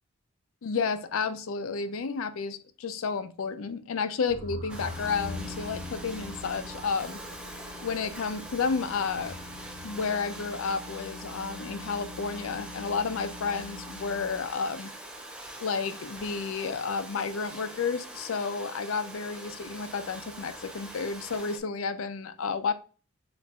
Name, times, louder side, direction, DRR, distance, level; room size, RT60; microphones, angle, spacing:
voice 1, 0.6-7.2 7.8-9.4 9.8-14.9 15.6-22.7, left 5 dB, 80° left, 0.5 m, -31 dB
sound 1, 4.3-10.0, left 2 dB, 35° right, 1.8 m, -44 dB
Domestic sounds home sounds, 4.7-21.6, right 1 dB, 5° right, 0.4 m, -44 dB
sound 2, 4.7-14.6, left 3 dB, 85° right, 0.9 m, -45 dB
6.8 x 2.5 x 2.3 m
head